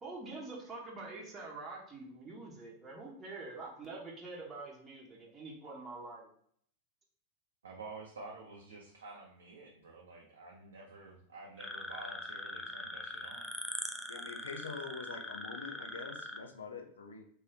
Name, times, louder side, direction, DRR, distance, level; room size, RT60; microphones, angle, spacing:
voice 1, 0.0-6.3, right 3 dB, 20° right, -4 dB, 0.9 m, -46 dB
voice 2, 7.6-13.5, right 3 dB, 70° right, -2 dB, 0.6 m, -50 dB
sound 1, 11.6-16.4, left 1 dB, 5° left, 0.3 m, -42 dB
voice 3, 14.1-17.3, left 5 dB, 70° left, 5 dB, 0.5 m, -45 dB
3.1 x 2.7 x 2.8 m, 0.62 s
figure-of-eight pair, 90°, 0 cm